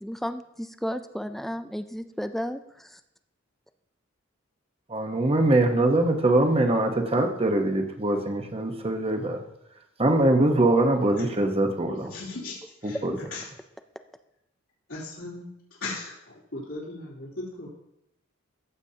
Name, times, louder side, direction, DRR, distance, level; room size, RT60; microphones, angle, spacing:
voice 1, 0.0-2.6, equal, ahead, 9 dB, 0.3 m, -33 dB
voice 2, 4.9-9.4 10.0-12.1 13.0-13.2, right 2 dB, 30° right, 4 dB, 1.0 m, -22 dB
voice 3, 12.1-13.0 13.3-13.4 14.9-15.5 15.8-17.7, left 3 dB, 85° left, -10 dB, 3.1 m, -37 dB
15.0 x 7.1 x 2.8 m, 0.84 s
head